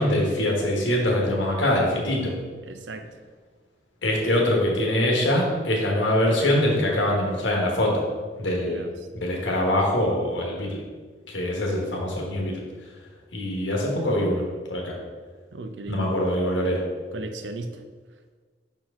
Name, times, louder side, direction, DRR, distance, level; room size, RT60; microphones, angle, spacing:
voice 1, 0.0-2.3 4.0-8.0 8.4-8.9 9.2-10.8 11.3-12.6 13.3-14.4 14.7-15.0 15.9-16.8, left 1 dB, 85° left, -1 dB, 1.3 m, -23 dB
voice 2, 2.6-3.1 8.6-8.9 15.5-16.1 17.1-17.8, right 2 dB, 75° right, 7 dB, 0.5 m, -36 dB
5.8 x 4.6 x 3.7 m, 1.5 s
head